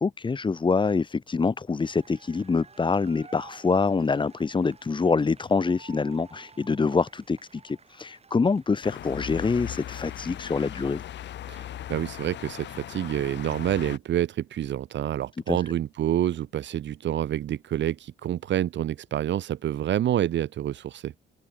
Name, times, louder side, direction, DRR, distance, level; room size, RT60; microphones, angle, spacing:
voice 1, 0.0-11.0 15.5-15.6, left 4 dB, 25° left, 1.0 m, -25 dB
sound 1, 1.8-9.3, right 4 dB, 30° right, 4.2 m, -52 dB
sound 2, 8.8-14.0, left 12 dB, 65° left, 0.8 m, -38 dB
voice 2, 11.9-21.1, right 11 dB, 65° right, 1.4 m, -28 dB
cardioid pair, 90°, 20 cm